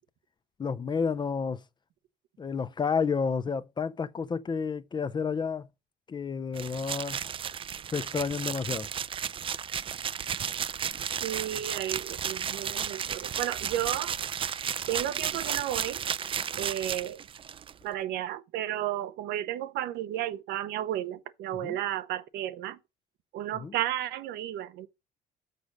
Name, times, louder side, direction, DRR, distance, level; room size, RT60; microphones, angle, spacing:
voice 1, 0.6-1.6 2.4-5.7 6.1-7.2 7.9-8.9 21.6-21.8 23.6-23.7, left 5 dB, 25° left, 0.5 m, -30 dB
sound 1, 6.5-17.7, right 8 dB, 30° right, 0.4 m, -33 dB
voice 2, 11.2-14.1 14.9-16.3 16.6-17.2 17.8-22.8 23.3-24.9, right 12 dB, 80° right, 0.8 m, -33 dB
6.8 x 5.3 x 6.1 m
cardioid pair, 110°, 17 cm